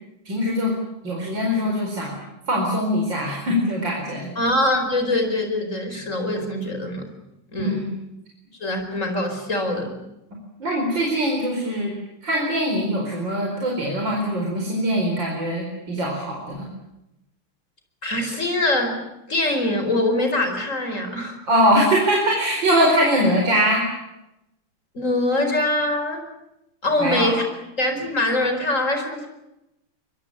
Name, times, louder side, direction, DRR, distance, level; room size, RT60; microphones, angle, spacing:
voice 1, 0.3-0.7 1.0-2.2 2.5-4.3 7.6-7.9 10.6-11.9 12.2-16.7 21.5-23.9 27.0-27.3, equal, 55° right, -1 dB, 5.3 m, -22 dB
voice 2, 4.4-7.1 7.5-7.9 8.6-9.9 18.0-19.0 19.3-21.4 24.9-26.2 26.8-27.4 27.8-29.3, left 1 dB, 35° left, 6 dB, 5.1 m, -23 dB
24.5 x 22.5 x 8.8 m, 0.90 s
omnidirectional pair, 2.4 m